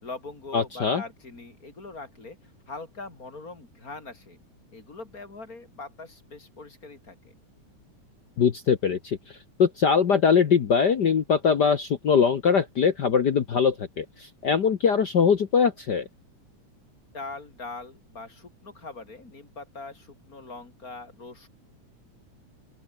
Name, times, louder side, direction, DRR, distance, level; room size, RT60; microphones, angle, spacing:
voice 1, 0.0-4.4 4.7-7.3 17.1-21.5, left 3 dB, 25° left, 4.4 m, -42 dB
voice 2, 0.5-1.0 8.4-16.1, left 6 dB, 60° left, 1.1 m, -22 dB
open air
omnidirectional pair, 3.5 m